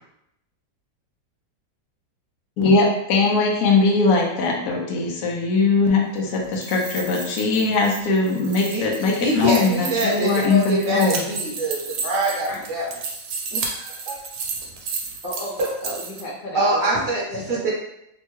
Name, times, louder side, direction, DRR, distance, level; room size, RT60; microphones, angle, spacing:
voice 1, 2.6-11.3, left 3 dB, 65° left, -1 dB, 1.1 m, -20 dB
sound 1, 6.4-16.2, right 4 dB, 80° right, 1.2 m, -33 dB
voice 2, 9.2-12.8 13.5-14.2 16.5-17.7, right 1 dB, 50° right, -5 dB, 1.1 m, -24 dB
voice 3, 15.2-16.9 17.3-17.7, equal, 45° left, -6 dB, 0.6 m, -33 dB
3.4 x 2.1 x 3.1 m, 0.80 s
omnidirectional pair, 1.9 m